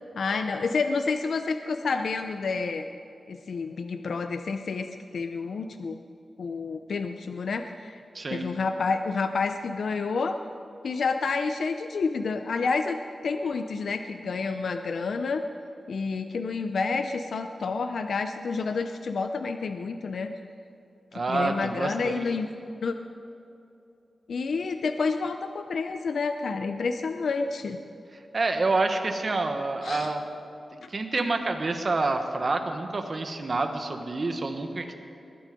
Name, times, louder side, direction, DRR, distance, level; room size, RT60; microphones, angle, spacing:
voice 1, 0.2-2.9 3.3-6.0 6.4-8.0 8.3-10.4 10.8-13.0 13.2-15.4 15.9-20.3 21.3-22.5 22.8-22.9 24.3-27.8 29.8-30.1 30.8-30.9, left 4 dB, 80° left, 7 dB, 0.6 m, -29 dB
voice 2, 8.1-8.5 21.1-22.2 28.3-30.2 30.9-34.9, right 3 dB, 45° right, 6 dB, 1.3 m, -28 dB
20.5 x 11.0 x 5.2 m, 2.7 s
wide cardioid pair, 100°, 0 cm